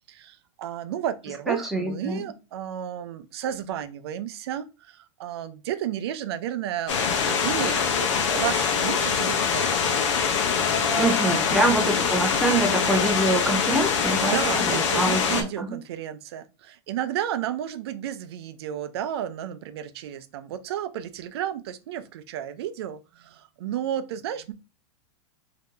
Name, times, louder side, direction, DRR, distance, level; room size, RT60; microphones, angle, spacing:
voice 1, 0.1-9.7 11.3-11.7 14.2-24.5, right 10 dB, 60° right, 0.5 m, -32 dB
voice 2, 1.5-2.2 11.0-15.8, right 1 dB, ahead, 0.4 m, -25 dB
sound 1, 6.9-15.4, left 6 dB, 80° left, 0.8 m, -24 dB
2.8 x 2.5 x 3.6 m
supercardioid pair, 175°, 15 cm